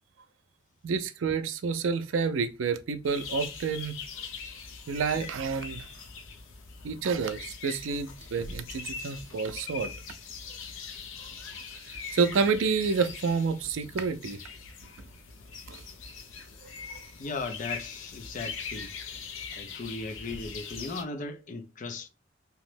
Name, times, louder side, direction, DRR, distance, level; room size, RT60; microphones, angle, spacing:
voice 1, 0.8-4.0 4.9-5.9 6.8-9.9 11.2-11.3 11.9-14.4 15.7-15.8 16.9-17.0, right 5 dB, 85° right, 0.4 m, -29 dB
sound 1, 3.0-21.0, left 5 dB, 85° left, 0.6 m, -42 dB
voice 2, 17.1-19.0 19.5-22.1, left 3 dB, 40° left, 0.4 m, -37 dB
2.9 x 2.1 x 3.1 m
head